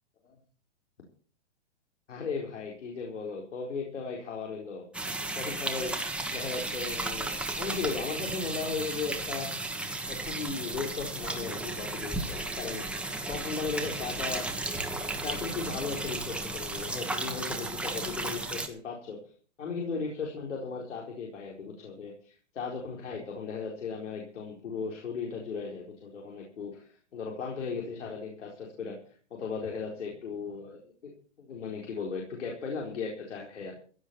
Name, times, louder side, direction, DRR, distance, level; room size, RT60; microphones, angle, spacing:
voice 1, 2.1-4.8 5.3-5.9 6.3-9.5 10.1-12.8 13.3-14.5 15.1-19.2 19.6-29.0 29.3-31.1 31.4-33.7, left 5 dB, 90° left, 0 dB, 4.4 m, -36 dB
sound 1, 4.9-18.7, right 2 dB, 5° right, 1.4 m, -34 dB
16.0 x 8.6 x 6.9 m, 0.43 s
hypercardioid pair, 150°, 35 cm